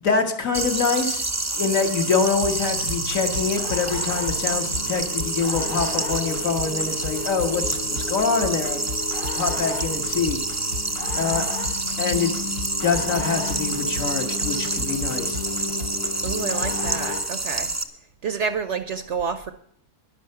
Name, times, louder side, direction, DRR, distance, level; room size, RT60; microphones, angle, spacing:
voice 1, 0.0-1.2 1.6-7.8 8.1-8.8 9.4-10.4 11.1-11.4 12.0-12.3 12.8-15.4, left 5 dB, 60° left, 4 dB, 1.9 m, -25 dB
sound 1, 0.5-17.8, right 2 dB, 20° right, 0.5 m, -28 dB
sound 2, 2.4-17.4, left 2 dB, 85° left, 2.7 m, -33 dB
voice 2, 16.2-17.7 18.2-19.5, right 6 dB, 60° right, 11 dB, 0.9 m, -29 dB
11.5 x 10.5 x 6.7 m, 0.65 s
omnidirectional pair, 1.7 m